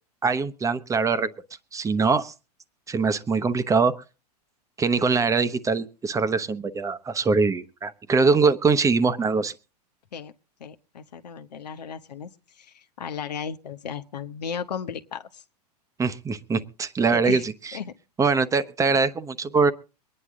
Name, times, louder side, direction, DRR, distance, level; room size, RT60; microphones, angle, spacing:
voice 1, 0.2-1.3 1.7-2.3 2.9-3.9 4.8-9.5 16.0-17.8 18.2-19.7, right 4 dB, 15° right, 0.9 m, -23 dB
voice 2, 10.6-12.3 12.6-15.4 17.1-17.4 17.7-17.9, left 7 dB, 80° left, 1.1 m, -35 dB
23.5 x 9.9 x 3.7 m
hypercardioid pair, 105°, 21 cm